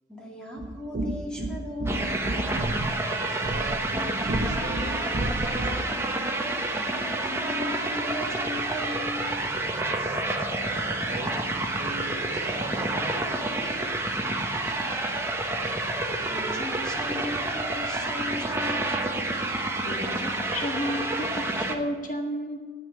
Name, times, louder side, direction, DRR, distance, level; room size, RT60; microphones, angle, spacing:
voice 1, 0.1-2.8 6.7-9.8 14.7-15.0 15.8-18.9, left 1 dB, 5° left, -2 dB, 2.3 m, -38 dB
sound 1, 0.6-6.0, right 1 dB, 75° right, 0.9 m, -32 dB
sound 2, 1.9-21.8, right 2 dB, 15° right, 1.1 m, -29 dB
voice 2, 3.2-6.3 10.4-13.9 14.9-15.0, right 2 dB, 45° right, 1 dB, 1.6 m, -40 dB
voice 3, 19.8-22.6, equal, 50° left, 1 dB, 1.5 m, -32 dB
9.8 x 9.3 x 8.7 m, 1.5 s
head